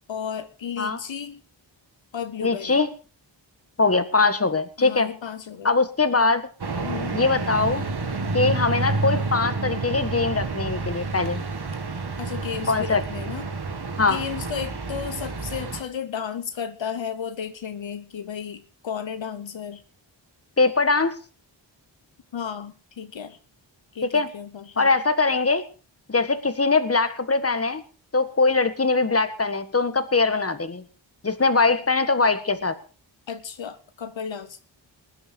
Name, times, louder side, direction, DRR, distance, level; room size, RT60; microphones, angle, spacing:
voice 1, 0.1-1.4 2.1-2.8 4.8-5.7 6.8-7.2 12.2-13.5 14.0-19.8 22.3-23.4 23.9-25.0 33.3-34.6, left 7 dB, 75° left, 11 dB, 1.1 m, -33 dB
voice 2, 2.4-2.9 3.8-5.1 5.6-6.5 7.1-7.8 8.3-11.4 12.7-13.0 14.0-14.2 20.6-21.2 24.1-24.3 24.8-25.6 26.1-27.8 28.1-30.8 31.2-32.8, left 3 dB, 30° left, 11 dB, 1.6 m, -22 dB
sound 1, 6.6-15.8, right 3 dB, 55° right, 2.0 m, -29 dB
20.5 x 10.0 x 4.5 m, 0.37 s
wide cardioid pair, 70°, 46 cm